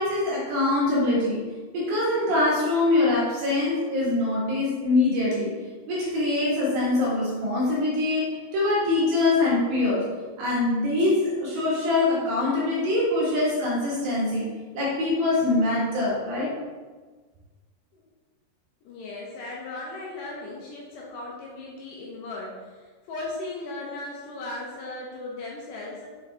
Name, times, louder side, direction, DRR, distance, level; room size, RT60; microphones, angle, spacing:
voice 1, 0.0-1.5 1.7-5.5 5.9-10.1 10.4-16.5, left 2 dB, 60° right, -6 dB, 2.9 m, -24 dB
voice 2, 18.8-26.1, left 2 dB, 75° left, -3 dB, 2.7 m, -37 dB
7.3 x 6.2 x 3.4 m, 1.4 s
omnidirectional pair, 5.5 m